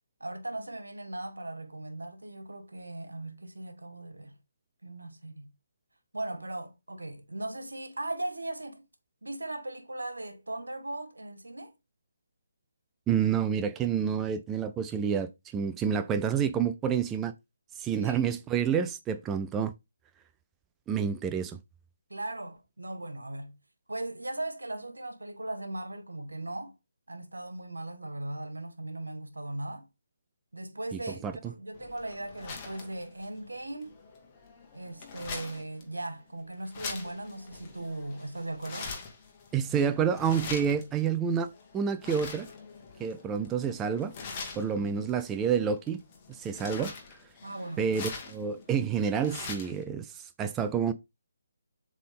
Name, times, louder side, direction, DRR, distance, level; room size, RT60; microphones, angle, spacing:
voice 1, 0.2-4.3 4.8-5.5 6.1-8.8 9.2-11.7 18.0-18.4 22.1-23.6 23.9-26.7 27.1-29.9 30.5-33.9 34.7-38.9 44.7-45.0 47.4-47.8, right 2 dB, 80° right, 1.5 m, -38 dB
voice 2, 13.1-17.3 17.8-19.7 20.9-21.6 30.9-31.3 39.5-41.5 41.7-42.5 43.0-44.1 44.6-46.0 46.4-46.9 47.8-50.9, right 7 dB, 15° right, 0.4 m, -28 dB
sound 1, 31.7-49.8, left 5 dB, 25° left, 1.6 m, -44 dB
7.4 x 3.7 x 3.6 m
figure-of-eight pair, 145°, 0 cm